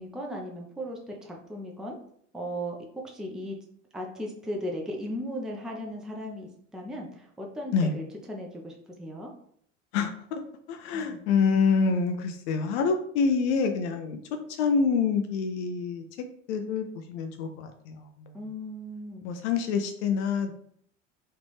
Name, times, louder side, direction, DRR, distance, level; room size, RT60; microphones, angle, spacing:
voice 1, 0.0-2.0 2.3-3.6 3.9-9.3 10.9-11.2 18.3-19.3, equal, ahead, 0 dB, 0.5 m, -37 dB
voice 2, 9.9-10.4 10.7-14.2 14.6-16.0 16.5-18.3 19.2-20.5, left 5 dB, 65° left, 6 dB, 0.5 m, -26 dB
3.2 x 2.5 x 3.3 m, 0.64 s
hypercardioid pair, 70°, 38 cm